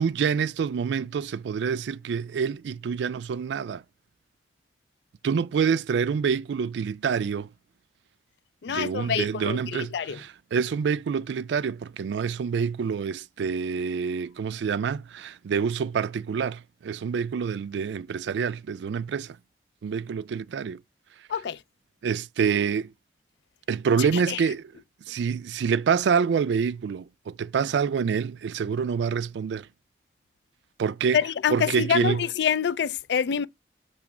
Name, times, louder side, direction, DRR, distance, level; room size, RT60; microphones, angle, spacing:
voice 1, 0.0-3.8 5.2-7.5 8.7-19.4 19.8-20.8 22.0-22.9 23.7-24.6 25.1-29.7 30.8-31.2 31.5-32.2, right 6 dB, 75° right, 0.3 m, -27 dB
voice 2, 8.6-10.2 21.3-21.6 24.0-24.4 31.1-33.5, left 7 dB, 70° left, 0.4 m, -26 dB
7.1 x 3.0 x 5.9 m
head